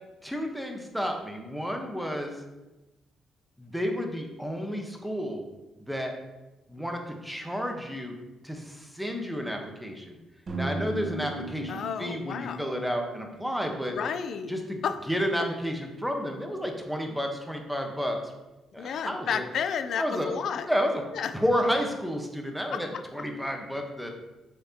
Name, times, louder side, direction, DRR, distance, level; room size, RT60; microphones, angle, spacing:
voice 1, 0.2-2.4 3.6-5.4 5.9-6.1 6.7-8.2 8.4-10.2 10.5-14.0 14.5-18.3 18.7-19.4 20.0-20.3 20.6-21.0 21.3-24.1, equal, ahead, 2 dB, 1.1 m, -31 dB
sound 1, 10.5-14.6, right 2 dB, 40° right, 1.2 m, -38 dB
voice 2, 11.7-12.6 13.7-14.5 14.8-15.0 18.8-20.7 21.1-21.3 22.7-23.0, left 7 dB, 65° left, 9 dB, 0.5 m, -32 dB
6.7 x 5.9 x 2.9 m, 1.1 s
cardioid pair, 90°, 0 cm